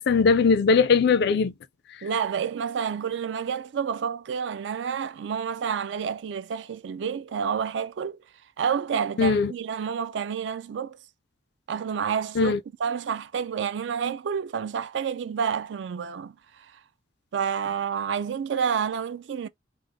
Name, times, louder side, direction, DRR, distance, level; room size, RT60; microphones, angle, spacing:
voice 1, 0.0-1.5 9.2-9.5 12.4-12.6, left 5 dB, 65° left, 0.4 m, -20 dB
voice 2, 2.0-8.2 8.6-11.0 11.7-12.5 12.8-16.3 17.3-19.5, right 7 dB, 75° right, 0.4 m, -29 dB
3.4 x 2.0 x 3.4 m
head